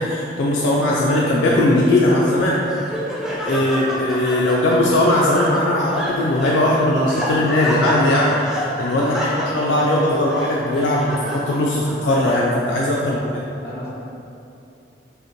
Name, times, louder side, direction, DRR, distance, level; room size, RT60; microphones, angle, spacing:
voice 1, 0.0-2.6 3.4-13.3, left 1 dB, 90° left, -4 dB, 0.4 m, -19 dB
Laughter, 2.3-12.8, equal, 5° right, 0.3 m, -29 dB
voice 2, 8.9-10.5 12.8-13.4 13.6-13.9, equal, 60° left, -7 dB, 1.0 m, -31 dB
5.3 x 2.1 x 2.9 m, 2.6 s
head